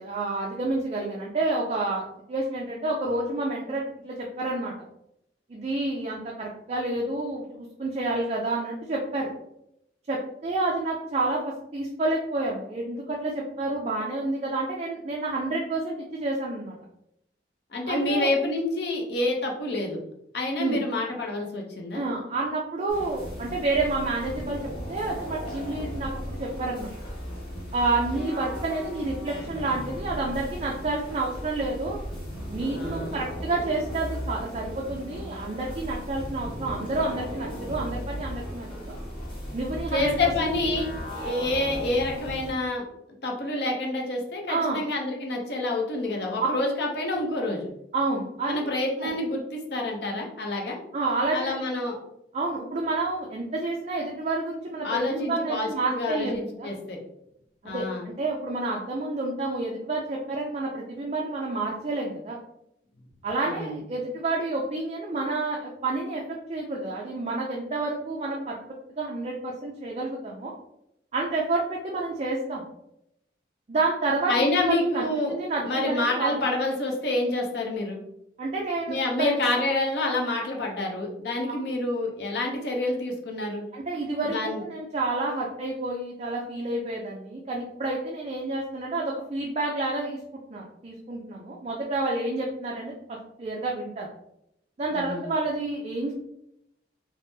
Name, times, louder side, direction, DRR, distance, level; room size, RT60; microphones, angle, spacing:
voice 1, 0.0-4.7 5.5-9.3 10.1-16.7 17.9-18.3 20.6-20.8 21.9-24.6 24.9-26.9 27.7-32.0 32.5-38.9 39.5-40.5 44.5-44.8 47.9-48.7 49.0-49.1 50.9-51.5 52.3-56.7 57.6-62.4 63.2-68.6 69.0-70.5 71.1-72.7 73.7-76.4 78.4-79.6 83.7-90.2 90.5-92.9 93.4-94.1 94.8-96.1, right 2 dB, 35° right, -2 dB, 0.3 m, -29 dB
voice 2, 17.7-20.0 20.3-22.0 32.7-33.2 39.9-42.8 43.2-47.7 48.5-50.8 51.3-52.0 54.8-57.0 57.6-58.0 63.4-63.8 74.3-75.3 75.6-78.0 78.9-83.6 84.3-84.6 94.9-95.3, left 2 dB, 65° left, 0 dB, 0.6 m, -28 dB
sound 1, 22.9-42.5, equal, 30° left, 0.9 m, -36 dB
3.4 x 2.0 x 2.7 m, 0.80 s
head